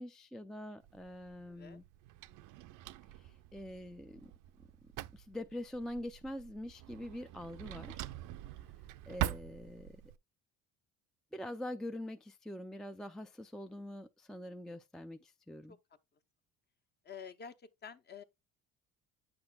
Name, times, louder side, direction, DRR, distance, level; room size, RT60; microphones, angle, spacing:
voice 1, 0.0-1.8 3.1-4.3 5.1-8.1 9.1-10.0 11.3-15.8, left 1 dB, ahead, 0.3 m, -44 dB
Drawer open or close, 0.8-10.2, right 15 dB, 70° right, 0.5 m, -44 dB
voice 2, 1.5-1.8 15.7-15.8 17.0-18.2, left 6 dB, 30° left, 0.7 m, -49 dB
8.7 x 6.1 x 2.2 m
cardioid pair, 110°, 33 cm